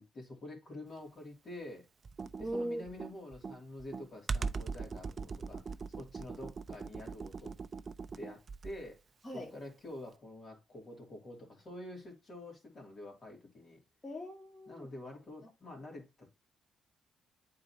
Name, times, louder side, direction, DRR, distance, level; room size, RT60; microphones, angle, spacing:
voice 1, 0.0-1.9 2.4-7.5 8.2-9.0 9.3-13.8 14.7-16.3, left 1 dB, 45° left, 2.9 m, -48 dB
Computer keyboard, 2.0-8.9, right 4 dB, 40° right, 0.4 m, -40 dB
voice 2, 2.4-2.9 9.2-9.5 14.0-14.9, equal, 20° left, 2.1 m, -39 dB
8.6 x 3.9 x 2.9 m
cardioid pair, 90°, 0 cm